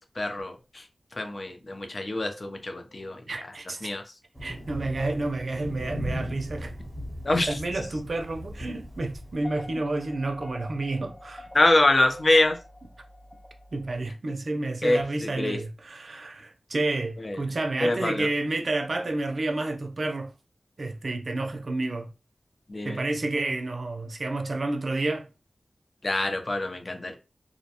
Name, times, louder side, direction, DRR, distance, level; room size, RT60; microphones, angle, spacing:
voice 1, 0.2-0.5 1.2-3.2 3.8-4.0 7.2-7.5 11.5-12.5 14.8-15.0 15.4-15.6 17.3-17.4 17.8-18.3 22.7-23.0 26.0-27.2, left 2 dB, 45° left, 0.5 m, -24 dB
voice 2, 3.3-3.9 4.4-6.7 7.5-11.5 13.7-20.3 20.8-22.1 22.8-25.3, right 2 dB, 60° right, 0.4 m, -30 dB
Thunder, 4.3-9.4, equal, 5° left, 0.9 m, -37 dB
sound 1, 9.2-14.1, left 1 dB, 80° left, 1.3 m, -46 dB
2.5 x 2.1 x 2.8 m
wide cardioid pair, 90°, 0 cm